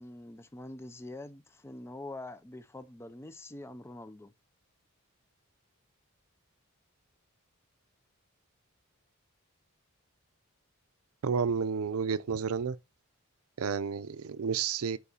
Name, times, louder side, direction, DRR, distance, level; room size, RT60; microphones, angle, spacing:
voice 1, 0.0-4.3, left 2 dB, 10° left, 0.4 m, -45 dB
voice 2, 11.2-12.8 13.6-15.0, right 6 dB, 70° right, 0.5 m, -31 dB
8.4 x 4.6 x 2.8 m
head